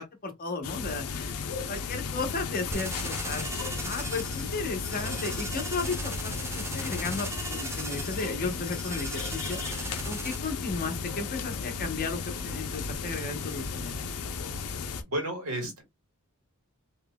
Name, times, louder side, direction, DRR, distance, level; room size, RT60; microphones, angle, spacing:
voice 1, 0.0-1.4 1.7-13.9, left 3 dB, 40° left, 0.9 m, -35 dB
sound 1, 0.6-15.0, left 5 dB, 70° left, 0.6 m, -35 dB
sound 2, 2.7-10.4, right 2 dB, 10° right, 0.5 m, -39 dB
voice 2, 15.1-15.8, right 1 dB, 80° right, 1.7 m, -32 dB
3.8 x 3.0 x 2.2 m
head